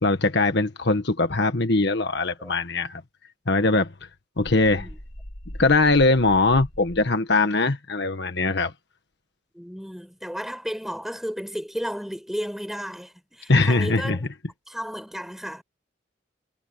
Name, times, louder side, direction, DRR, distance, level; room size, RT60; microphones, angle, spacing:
voice 1, 0.0-3.0 3.5-3.9 4.4-4.9 5.6-8.7 13.5-14.2, left 3 dB, 60° left, 1.5 m, -21 dB
sound 1, 4.4-7.2, equal, 90° left, 3.9 m, -40 dB
voice 2, 4.6-5.0 9.5-14.3 14.7-15.6, equal, ahead, 6.3 m, -33 dB
head